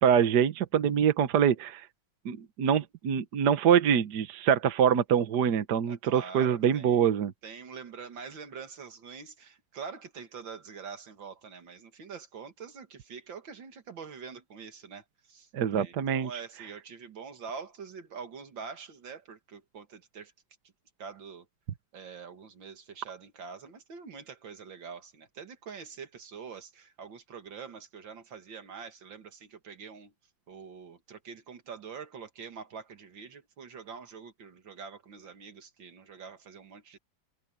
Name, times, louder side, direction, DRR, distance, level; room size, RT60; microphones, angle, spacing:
voice 1, 0.0-1.9 2.2-7.3 15.5-16.4, right 8 dB, 65° right, 1.6 m, -25 dB
voice 2, 5.9-7.0 7.4-15.0 15.3-20.3 21.0-21.4 21.9-30.1 30.5-37.0, right 6 dB, 80° right, 2.6 m, -45 dB
omnidirectional pair, 2.1 m